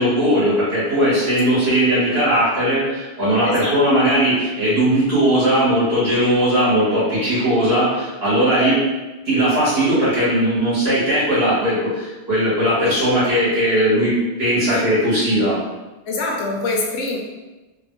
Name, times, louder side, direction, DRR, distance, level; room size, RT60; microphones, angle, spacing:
voice 1, 0.0-8.8 9.3-14.1 14.4-15.6, equal, 60° right, -10 dB, 1.7 m, -18 dB
voice 2, 3.4-3.8 8.6-8.8 14.7-14.9 16.0-17.2, left 2 dB, 70° left, 0 dB, 0.9 m, -25 dB
3.4 x 2.3 x 3.0 m, 1.1 s
omnidirectional pair, 1.2 m